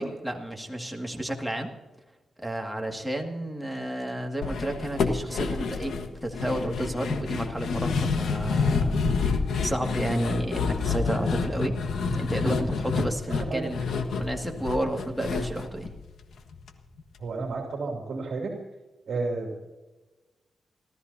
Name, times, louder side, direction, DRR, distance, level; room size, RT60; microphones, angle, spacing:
voice 1, 0.0-1.7 2.4-11.8 12.1-13.8 14.2-15.9, right 1 dB, ahead, 1 dB, 2.1 m, -31 dB
sound 1, 4.4-16.7 17.0-17.1 17.4-17.5, left 4 dB, 85° left, 1.4 m, -28 dB
voice 2, 13.3-13.7 17.2-18.6 19.1-19.6, right 3 dB, 70° right, 0 dB, 2.7 m, -32 dB
29.0 x 13.5 x 2.8 m, 1.2 s
wide cardioid pair, 110°, 0 cm